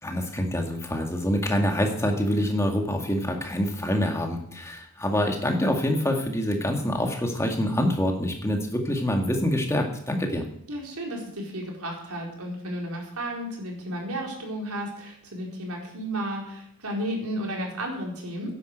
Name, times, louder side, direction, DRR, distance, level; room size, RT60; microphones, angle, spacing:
voice 1, 0.0-10.4, equal, 15° left, 2 dB, 2.0 m, -26 dB
voice 2, 10.7-18.5, right 1 dB, 80° right, -1 dB, 4.5 m, -33 dB
11.5 x 10.5 x 8.0 m, 0.71 s
head